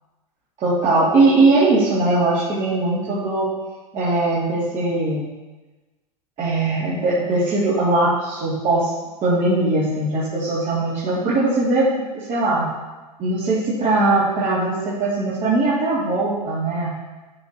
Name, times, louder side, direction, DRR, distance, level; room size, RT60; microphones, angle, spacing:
voice 1, 0.6-3.5 3.9-5.3 6.4-8.9 9.2-12.7 13.2-16.9, right 2 dB, 35° right, -10 dB, 3.6 m, -20 dB
13.0 x 5.1 x 4.8 m, 1.2 s
hypercardioid pair, 95°, 21 cm